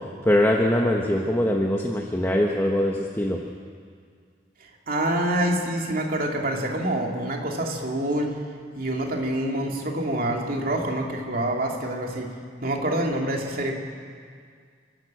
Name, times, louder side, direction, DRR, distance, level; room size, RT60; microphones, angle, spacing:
voice 1, 0.2-3.4, left 1 dB, 15° left, 0 dB, 1.2 m, -22 dB
voice 2, 4.9-8.4 8.7-12.3 12.6-13.8, right 1 dB, 50° right, 1 dB, 2.7 m, -26 dB
28.5 x 12.5 x 7.7 m, 2.1 s
head